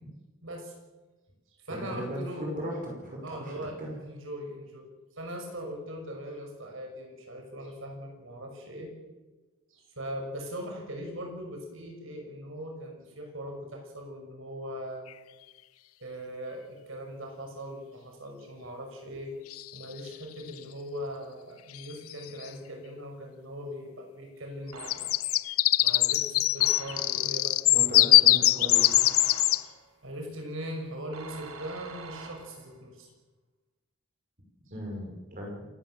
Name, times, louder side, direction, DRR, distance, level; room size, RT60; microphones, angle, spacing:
voice 1, 0.4-0.7 1.6-2.7 3.2-4.9 5.2-8.9 9.7-15.0 16.0-19.3 19.7-25.1 25.8-28.7 29.6-29.7 30.0-33.1, equal, 65° right, 3 dB, 6.1 m, -40 dB
voice 2, 1.7-2.8 3.0-4.0 27.7-29.1 34.7-35.7, equal, 40° right, -1 dB, 5.6 m, -37 dB
sound 1, 15.1-15.2 19.5-20.1 21.7-21.8 22.1-22.4 24.7-29.6, left 16 dB, 85° left, 0.6 m, -22 dB
sound 2, 24.7-25.4 26.6-27.5 28.7-29.9 31.1-32.8, right 4 dB, 85° right, 3.4 m, -45 dB
27.5 x 13.5 x 7.7 m, 1.2 s
head